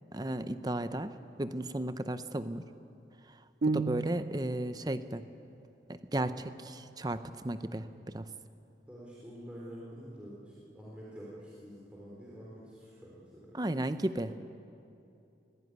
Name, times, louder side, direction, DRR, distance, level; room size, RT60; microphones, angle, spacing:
voice 1, 0.1-1.1 1.4-2.7 3.6-5.2 5.9-8.3 13.5-14.4, right 1 dB, 20° right, 11 dB, 0.8 m, -34 dB
sound 1, 3.6-4.6, right 3 dB, 60° right, 0.6 m, -32 dB
voice 2, 8.9-13.6, equal, 5° right, -7 dB, 3.8 m, -47 dB
22.5 x 16.5 x 9.5 m, 2.7 s
head